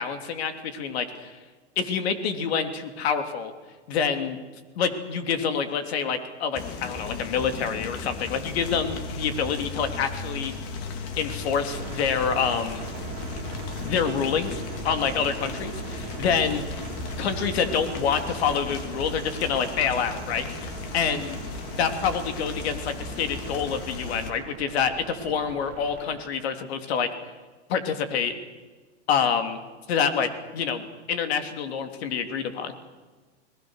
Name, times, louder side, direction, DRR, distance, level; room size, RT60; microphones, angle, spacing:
voice 1, 0.0-1.3 1.8-3.5 3.9-4.4 4.8-10.5 11.2-12.9 13.8-16.6 17.2-20.5 20.9-21.4 21.7-27.1 27.7-28.3 29.1-29.6 29.9-32.7, left 6 dB, 65° left, 8 dB, 3.1 m, -27 dB
sound 1, 6.5-24.3, left 4 dB, 40° left, 3.1 m, -36 dB
sound 2, 11.7-26.2, right 10 dB, 45° right, 1.9 m, -41 dB
30.0 x 20.0 x 6.5 m, 1.4 s
hypercardioid pair, 125°, 35 cm